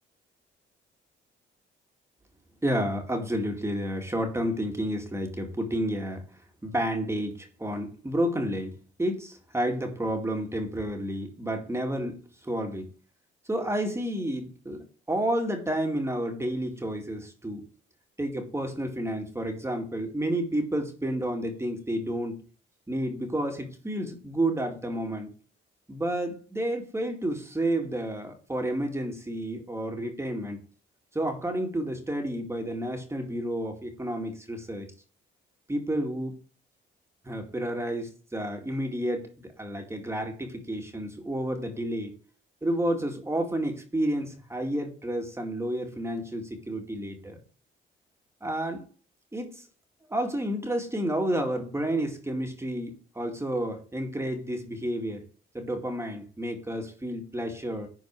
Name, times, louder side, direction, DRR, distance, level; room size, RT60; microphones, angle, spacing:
voice 1, 2.6-6.2 6.6-12.9 13.5-17.7 18.2-22.4 22.9-25.3 25.9-30.6 31.1-34.9 35.7-36.4 37.2-42.1 42.6-47.4 48.4-48.9 49.3-49.7 50.1-55.2 55.5-57.9, right 1 dB, 15° right, 3 dB, 2.3 m, -30 dB
11.0 x 4.6 x 4.8 m, 0.38 s
cardioid pair, 90°, 20 cm